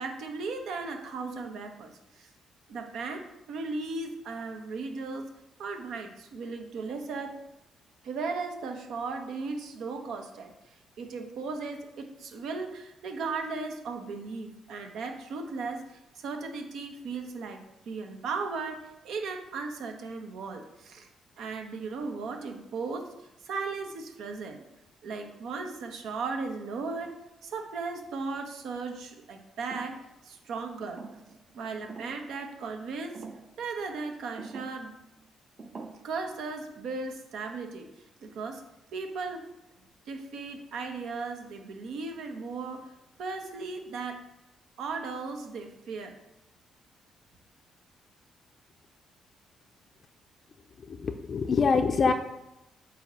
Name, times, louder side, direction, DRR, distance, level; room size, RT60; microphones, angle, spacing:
voice 1, 0.0-2.3 2.7-5.3 5.6-7.4 8.0-21.1 21.4-23.1 23.4-24.6 25.0-27.2 27.4-30.0 30.2-31.0 31.5-33.2 33.6-34.9 36.0-37.9 38.2-38.6 38.9-39.5 40.1-42.9 43.2-44.2 44.8-46.2, right 4 dB, 75° right, 4 dB, 1.0 m, -36 dB
sound 1, 29.7-30.1 30.8-31.4 31.9-32.3 33.1-33.5 34.4-34.8 35.6-35.9, right 4 dB, 40° right, 0.8 m, -44 dB
voice 2, 50.9-52.1, left 5 dB, 45° left, 5 dB, 0.4 m, -25 dB
8.3 x 2.8 x 6.2 m, 0.89 s
cardioid pair, 90°, 0 cm